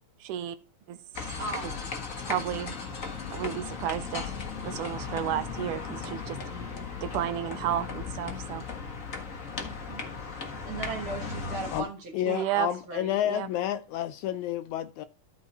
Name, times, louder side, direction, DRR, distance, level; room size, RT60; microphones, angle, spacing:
voice 1, 0.2-0.6 0.9-1.3 1.6-1.7 2.2-2.9 3.3-4.3 4.6-6.4 7.0-8.7 12.3-12.7 13.2-13.5, right 12 dB, 80° right, 2.1 m, -32 dB
sound 1, 1.1-11.8, left 5 dB, 55° left, 0.9 m, -36 dB
voice 2, 1.4-1.9 9.6-10.0 10.6-12.6 12.9-13.2, right 4 dB, 55° right, 1.7 m, -38 dB
voice 3, 12.1-15.1, left 12 dB, 80° left, 1.7 m, -30 dB
13.0 x 4.7 x 4.2 m
omnidirectional pair, 3.7 m